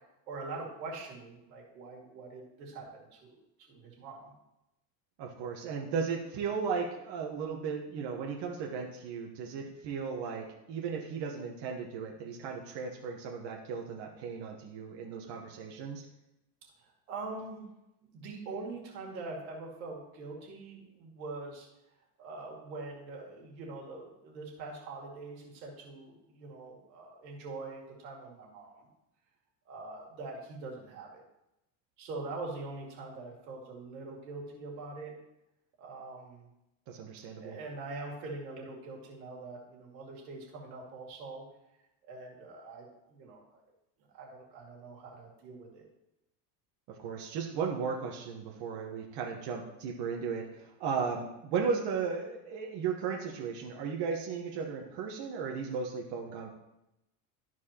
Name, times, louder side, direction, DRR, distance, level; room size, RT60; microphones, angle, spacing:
voice 1, 0.3-3.4 3.7-4.3 16.8-17.6 18.1-21.7 22.2-28.8 29.7-31.2 32.0-35.1 35.8-36.5 37.4-41.4 42.1-43.4 44.1-45.8, right 3 dB, 85° right, -2 dB, 2.4 m, -43 dB
voice 2, 5.2-16.0 36.9-37.6 46.9-56.5, right 6 dB, 55° right, -1 dB, 1.3 m, -35 dB
13.0 x 4.7 x 2.9 m, 0.89 s
supercardioid pair, 95°, 50 cm